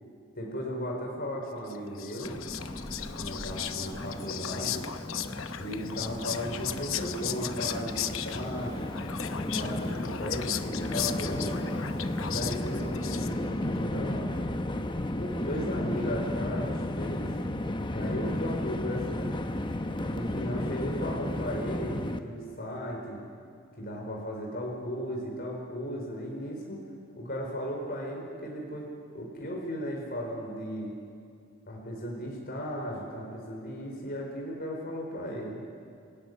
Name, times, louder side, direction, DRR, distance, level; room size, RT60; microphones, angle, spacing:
voice 1, 0.3-2.4 3.2-4.8 5.6-8.9 9.4-11.6 12.2-14.4 15.2-17.3 17.9-19.3 20.0-23.2 23.8-26.8 27.2-28.9 29.1-30.9 31.7-35.6, equal, 45° left, -1 dB, 4.7 m, -36 dB
Whispering, 1.7-13.6, left 10 dB, 65° left, 0.9 m, -37 dB
Train, 2.2-22.2, left 1 dB, 20° left, 0.8 m, -34 dB
27.0 x 18.0 x 9.5 m, 2.3 s
head